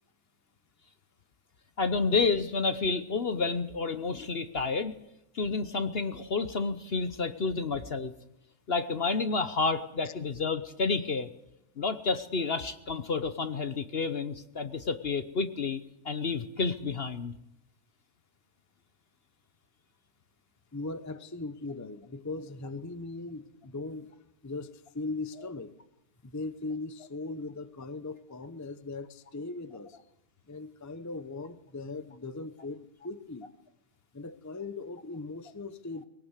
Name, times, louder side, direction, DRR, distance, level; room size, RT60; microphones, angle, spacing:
voice 1, 1.8-4.9 5.3-8.1 8.7-11.3 11.8-15.8 16.0-17.3, left 4 dB, 45° left, 11 dB, 1.0 m, -30 dB
voice 2, 20.7-24.1 24.4-25.8 26.2-30.0 30.5-33.5 34.1-36.1, left 3 dB, 15° left, 13 dB, 0.7 m, -39 dB
21.0 x 18.0 x 8.2 m, 0.84 s
omnidirectional pair, 1.7 m